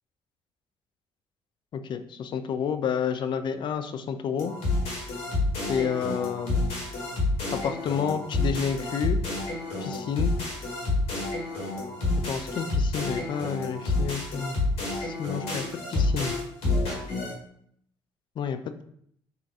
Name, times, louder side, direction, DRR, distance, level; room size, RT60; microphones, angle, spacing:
voice 1, 1.7-4.5 5.7-6.7 7.5-9.2 9.8-10.3 12.3-14.6 14.8-15.6 15.9-16.4 18.4-18.8, left 7 dB, 40° left, 9 dB, 0.4 m, -30 dB
sound 1, 4.4-17.3, left 2 dB, 55° left, 1.3 m, -29 dB
3.7 x 2.8 x 3.5 m, 0.67 s
figure-of-eight pair, 45°, 12 cm